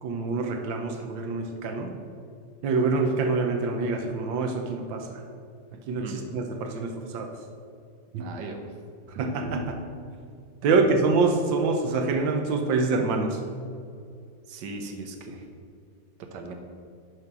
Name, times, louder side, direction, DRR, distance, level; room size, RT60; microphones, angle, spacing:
voice 1, 0.0-1.9 2.6-5.2 5.9-7.3 8.1-8.4 9.1-9.8 10.6-13.4, right 3 dB, 85° right, 4 dB, 1.5 m, -26 dB
voice 2, 8.2-8.6 10.6-10.9 14.5-15.5 16.3-16.5, right 3 dB, 70° right, 4 dB, 1.5 m, -38 dB
9.6 x 5.2 x 6.0 m, 2.5 s
omnidirectional pair, 2.0 m